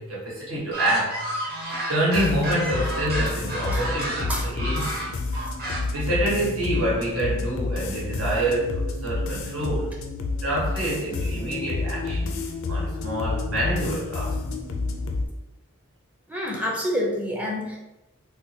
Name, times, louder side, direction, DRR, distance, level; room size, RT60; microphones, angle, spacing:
voice 1, 0.0-1.3 1.9-5.1 5.9-10.0 10.4-12.4 12.7-14.4, right 1 dB, 80° right, -6 dB, 1.3 m, -27 dB
sound 1, 0.7-6.0, right 1 dB, 45° right, 1.1 m, -31 dB
sound 2, 2.1-15.3, left 3 dB, 80° left, 0.4 m, -29 dB
voice 2, 16.3-17.8, equal, 5° right, -3 dB, 0.5 m, -27 dB
3.8 x 2.3 x 2.7 m, 0.98 s
head